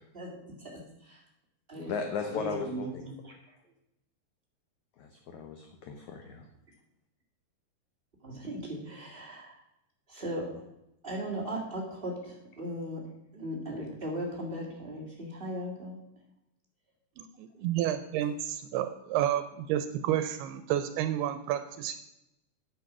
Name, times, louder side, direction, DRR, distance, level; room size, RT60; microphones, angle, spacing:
voice 1, 0.1-1.2 1.7-1.9 2.3-3.5 8.2-9.6 10.1-10.5 11.0-13.0 13.3-16.0, equal, 30° right, -3 dB, 1.0 m, -38 dB
voice 2, 1.9-3.1 5.0-6.5, left 5 dB, 80° left, 4 dB, 1.7 m, -36 dB
voice 3, 17.2-19.4 19.7-22.0, right 11 dB, 85° right, 10 dB, 2.5 m, -30 dB
9.3 x 7.6 x 5.9 m, 0.86 s
omnidirectional pair, 4.6 m